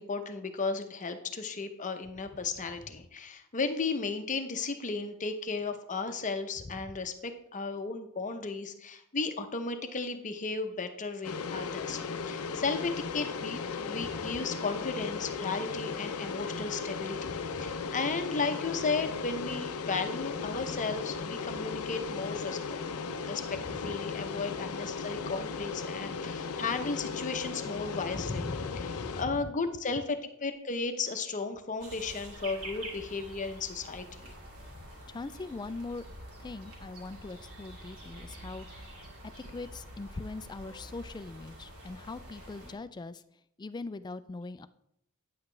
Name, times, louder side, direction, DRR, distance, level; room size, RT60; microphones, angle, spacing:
voice 1, 0.0-22.8 23.3-28.4 29.2-34.3, left 4 dB, 35° left, 7 dB, 0.7 m, -35 dB
sound 1, 11.2-29.2, left 5 dB, 80° left, 0.6 m, -36 dB
voice 2, 17.3-17.7 23.6-23.8 28.1-29.5 34.7-36.0 36.4-39.1 39.5-43.2 43.6-44.7, left 3 dB, 20° left, 14 dB, 0.3 m, -41 dB
sound 2, 31.8-42.7, right 1 dB, 70° right, 2.6 m, -47 dB
9.4 x 8.0 x 3.3 m, 0.77 s
head